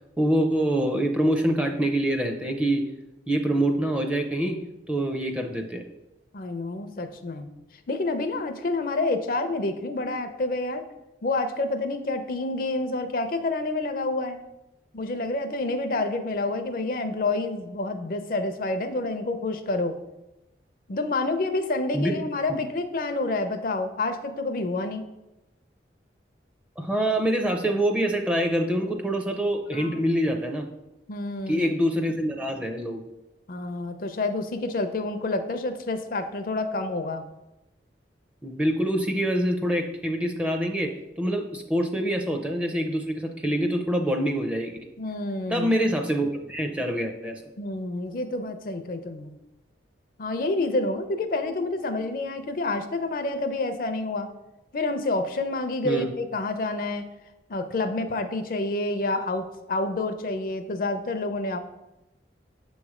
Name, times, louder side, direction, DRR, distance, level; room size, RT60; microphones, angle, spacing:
voice 1, 0.2-2.8 3.3-4.6 4.9-5.8 21.9-22.1 22.5-22.6 26.8-30.7 31.5-33.0 38.4-44.8 45.5-47.4 55.8-56.1, right 1 dB, 5° right, 4 dB, 0.4 m, -25 dB
voice 2, 6.3-7.5 7.9-10.9 11.2-14.4 14.9-20.0 20.9-25.0 29.7-30.0 31.1-31.7 33.5-37.2 45.0-45.7 47.6-49.4 50.2-54.3 54.7-57.1 57.5-61.6, left 2 dB, 50° left, 9 dB, 0.4 m, -28 dB
6.9 x 3.1 x 4.8 m, 0.96 s
head